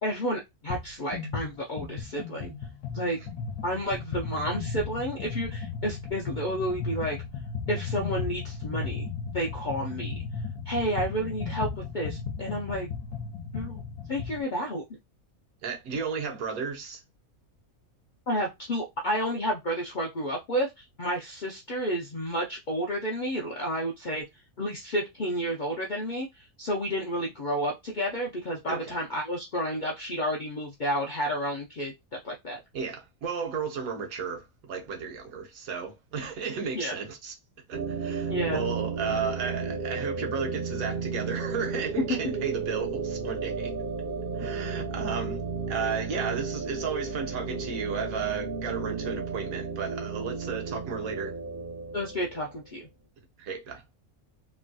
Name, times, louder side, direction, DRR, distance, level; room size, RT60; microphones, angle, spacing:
voice 1, 0.0-2.5 2.9-3.2 3.6-7.2 7.7-9.1 9.3-10.1 10.7-11.7 11.9-12.9 13.5-13.8 14.1-14.8 18.3-20.7 21.0-24.2 24.6-26.3 26.6-31.9 32.2-32.6 36.7-36.9 38.3-38.6 42.0-42.1 51.9-52.8, equal, 60° left, 0.5 m, -30 dB
sound 1, 0.7-0.9 1.1-14.4, left 5 dB, 90° left, 1.1 m, -35 dB
voice 2, 15.6-17.0 28.7-28.9 32.7-37.3 37.7-43.7 44.3-45.4 45.7-51.3 53.4-53.8, right 5 dB, 75° right, 1.2 m, -33 dB
sound 2, 37.7-52.7, right 5 dB, 60° right, 0.6 m, -33 dB
3.1 x 2.6 x 2.2 m
omnidirectional pair, 1.5 m